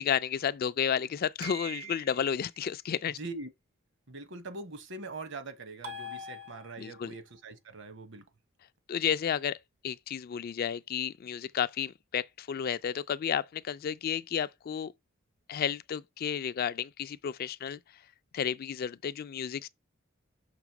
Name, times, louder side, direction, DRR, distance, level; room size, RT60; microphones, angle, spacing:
voice 1, 0.0-3.2 6.8-7.1 8.9-9.6 9.8-14.9 15.5-17.8 18.3-19.7, left 8 dB, 45° left, 0.3 m, -32 dB
sound 1, 1.4-2.3 5.8-7.1, equal, 90° right, 1.6 m, -42 dB
voice 2, 3.2-3.5 4.1-8.3, right 3 dB, 65° right, 1.1 m, -42 dB
6.1 x 3.5 x 5.9 m
head